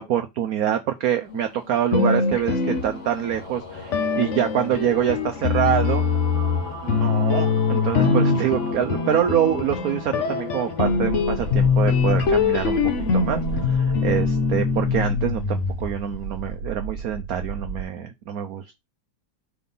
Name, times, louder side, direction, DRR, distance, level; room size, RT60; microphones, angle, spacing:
voice 1, 0.0-6.0 6.8-12.8 13.1-18.8, right 10 dB, 70° right, 0.8 m, -25 dB
sound 1, 1.0-15.4, left 3 dB, 40° left, 2.4 m, -38 dB
sound 2, 1.9-3.4 3.9-16.1, left 5 dB, 55° left, 0.9 m, -23 dB
sound 3, 10.8-17.8, right 5 dB, 55° right, 1.2 m, -33 dB
4.7 x 3.7 x 5.4 m
omnidirectional pair, 2.1 m